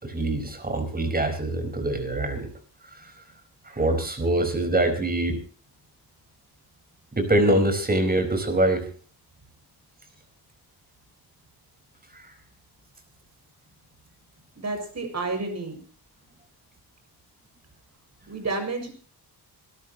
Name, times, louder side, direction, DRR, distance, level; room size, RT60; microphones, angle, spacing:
voice 1, 0.0-2.5 3.0-3.1 3.7-5.4 7.2-8.8, right 1 dB, 25° right, 7 dB, 4.8 m, -24 dB
voice 2, 14.6-15.8 18.3-18.9, right 3 dB, 40° right, 6 dB, 6.6 m, -30 dB
26.5 x 13.0 x 3.0 m, 0.40 s
wide cardioid pair, 130°, 40 cm